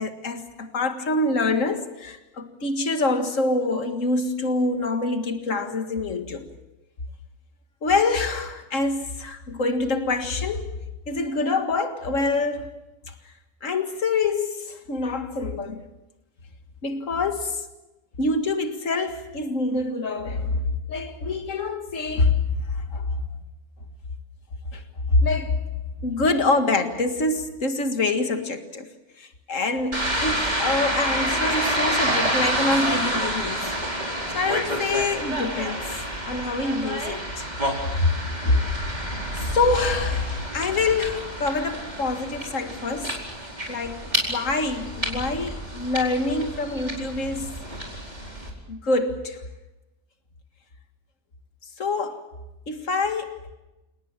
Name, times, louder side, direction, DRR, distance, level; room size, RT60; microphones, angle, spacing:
voice 1, 0.0-6.5 7.8-10.7 11.1-12.7 13.1-13.2 13.6-15.9 16.8-17.7 18.2-23.2 24.7-24.8 25.1-25.6 26.0-28.9 29.2-33.8 34.3-35.9 36.3-37.5 37.9-38.7 39.4-43.2 43.7-47.6 48.7-49.4 51.8-52.3 52.7-53.4, left 3 dB, 65° left, 2.3 m, -25 dB
sound 1, 29.9-48.5, right 1 dB, 30° right, 4.8 m, -28 dB
30.0 x 18.5 x 7.4 m
omnidirectional pair, 1.4 m